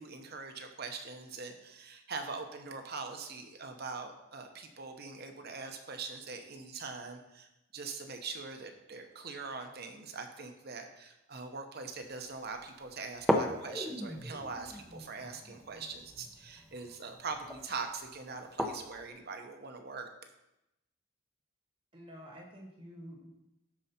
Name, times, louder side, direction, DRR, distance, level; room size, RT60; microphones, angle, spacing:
voice 1, 0.0-7.5 7.7-20.1, right 4 dB, 50° right, 5 dB, 0.9 m, -42 dB
sound 1, 12.0-12.1 12.5-12.6 13.1-19.1, left 1 dB, ahead, 0.7 m, -36 dB
voice 2, 21.9-23.3, equal, 25° right, 0 dB, 1.3 m, -49 dB
12.5 x 4.8 x 4.3 m, 0.91 s
head